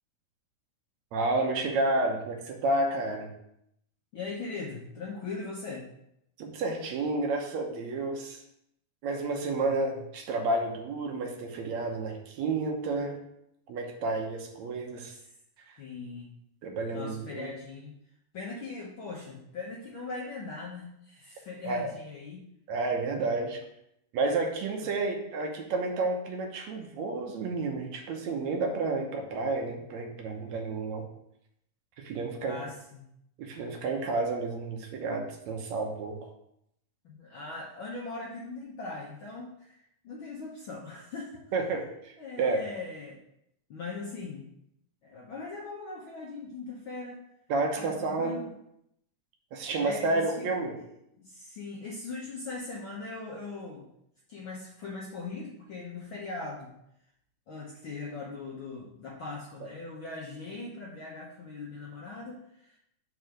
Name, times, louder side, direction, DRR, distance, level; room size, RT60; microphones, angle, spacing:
voice 1, 1.1-3.3 6.4-8.4 9.0-13.2 13.7-15.2 16.6-17.5 21.6-21.9 22.7-23.6 24.1-31.0 32.0-32.6 33.4-36.2 41.5-42.6 47.5-48.4 49.5-50.8, right 3 dB, 70° right, 2 dB, 2.1 m, -30 dB
voice 2, 4.1-5.9 9.6-10.0 15.2-15.3 15.8-16.3 16.9-17.9 18.3-22.5 32.4-33.0 37.0-41.5 42.2-43.2 43.7-44.5 45.0-47.2 47.8-48.5 49.8-50.5 51.2-53.9 54.3-56.7 57.5-62.8, left 3 dB, 60° left, -4 dB, 1.3 m, -40 dB
5.6 x 4.7 x 6.3 m, 0.77 s
omnidirectional pair, 3.5 m